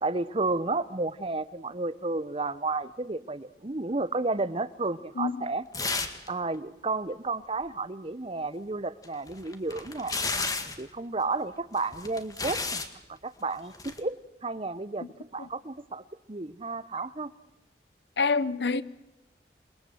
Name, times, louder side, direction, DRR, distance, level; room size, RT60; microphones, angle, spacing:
voice 1, 0.0-5.6 6.3-10.1 10.8-12.8 13.1-14.2 14.4-15.1 15.3-17.3, right 3 dB, 30° right, 0.9 m, -32 dB
sound 1, 5.7-6.3 6.5-6.6 9.0-10.8 11.8-12.9 13.7-14.0, left 3 dB, 20° left, 1.8 m, -32 dB
voice 2, 18.2-18.8, left 4 dB, 65° left, 0.9 m, -26 dB
28.5 x 21.5 x 7.9 m
head